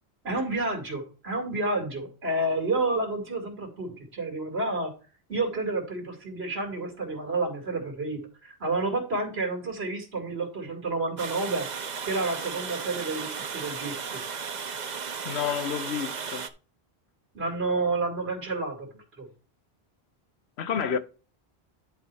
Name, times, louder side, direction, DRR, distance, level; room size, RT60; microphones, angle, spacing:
voice 1, 0.2-4.9 5.3-11.7 12.1-14.2 17.3-19.3, right 2 dB, 80° right, 2.5 m, -30 dB
Water, 11.2-16.5, right 6 dB, 50° right, 0.8 m, -35 dB
voice 2, 15.2-16.5 20.6-21.0, left 7 dB, 85° left, 1.1 m, -29 dB
10.5 x 4.1 x 4.6 m
omnidirectional pair, 1.1 m